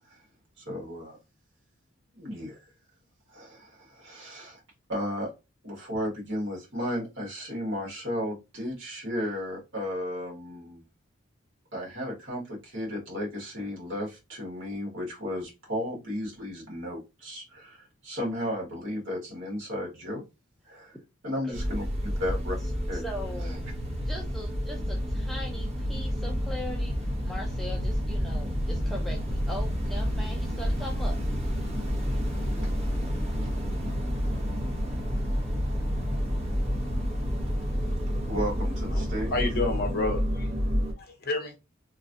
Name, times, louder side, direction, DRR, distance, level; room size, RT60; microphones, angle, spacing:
voice 1, 0.6-1.2 2.1-2.6 3.3-4.6 4.9-5.3 5.6-10.8 11.7-20.2 20.6-21.0 21.2-22.6 22.9-23.0 23.4-23.6 33.4-33.5 38.3-39.4, equal, 60° right, -2 dB, 1.6 m, -34 dB
sound 1, 21.5-40.9, equal, 30° right, 0.8 m, -29 dB
voice 2, 22.9-23.6 24.0-27.0 27.2-31.5, equal, ahead, 0 dB, 0.4 m, -40 dB
voice 3, 38.9-40.5 41.0-41.6, left 3 dB, 45° left, 6 dB, 0.7 m, -30 dB
3.1 x 2.6 x 2.5 m, 0.26 s
head